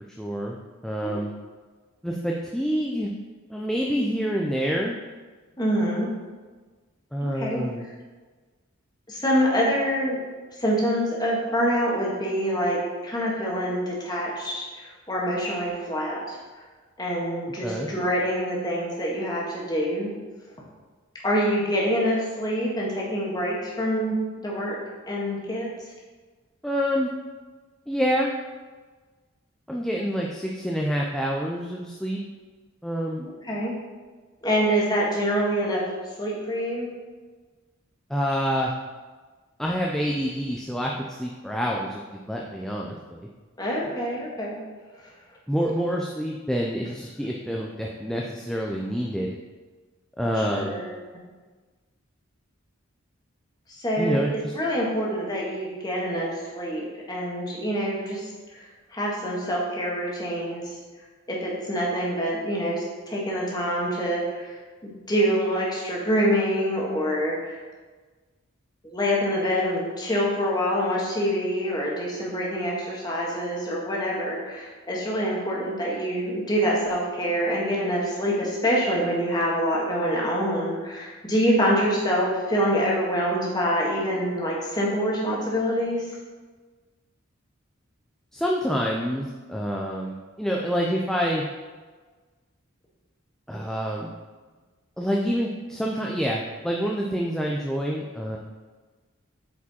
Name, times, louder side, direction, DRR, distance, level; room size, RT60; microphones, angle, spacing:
voice 1, 0.2-0.6 0.8-1.3 2.0-3.1 3.5-4.9 7.1-7.8 17.6-17.9 26.6-27.1 27.9-28.3 29.7-32.2 32.8-33.2 38.1-38.7 39.6-43.2 45.5-49.4 50.2-50.8 54.0-54.5 88.3-91.4 93.5-94.1 95.0-98.4, equal, ahead, -2 dB, 0.4 m, -27 dB
voice 2, 5.6-6.1 7.3-7.6 9.1-10.2 10.6-16.4 17.0-20.1 21.2-24.8 25.1-25.7 33.2-33.7 34.4-35.8 36.2-36.9 43.6-44.6 50.5-50.9 53.8-54.2 54.5-58.3 58.9-60.6 61.3-64.5 64.8-67.6 68.8-86.0, equal, 20° left, -4 dB, 1.6 m, -26 dB
8.3 x 4.9 x 4.3 m, 1.4 s
head